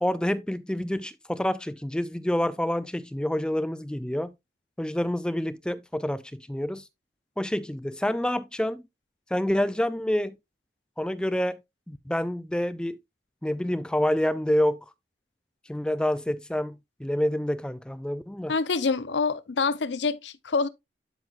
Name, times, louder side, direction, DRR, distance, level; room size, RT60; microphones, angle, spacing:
voice 1, 0.0-4.3 4.8-6.8 7.4-8.8 9.3-10.3 11.0-11.6 11.9-13.0 13.4-14.8 15.7-18.5, left 1 dB, 5° left, 0.3 m, -27 dB
voice 2, 18.5-20.7, left 4 dB, 90° left, 0.7 m, -26 dB
11.5 x 6.0 x 2.4 m
head